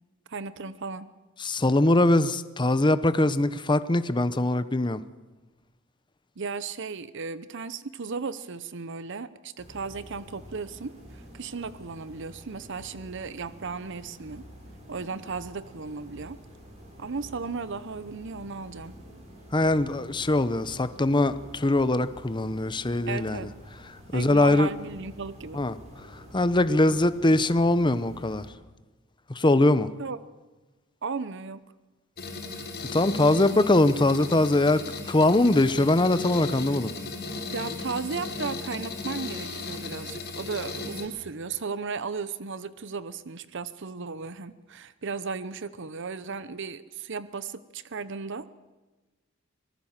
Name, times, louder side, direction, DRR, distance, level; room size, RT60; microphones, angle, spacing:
voice 1, 0.3-1.1 6.4-14.4 14.9-16.4 17.0-19.0 23.1-23.5 24.1-25.6 30.0-30.2 31.0-31.6 37.5-48.5, right 4 dB, 60° right, 0.8 m, -35 dB
voice 2, 1.4-5.0 19.5-23.5 24.1-24.7 25.5-25.8 26.1-28.5 29.3-29.9 32.9-36.9, left 2 dB, 20° left, 0.8 m, -22 dB
sound 1, 9.6-28.5, equal, 35° right, 7.0 m, -48 dB
sound 2, 32.2-41.1, left 3 dB, 50° left, 3.9 m, -36 dB
25.5 x 19.0 x 7.4 m
head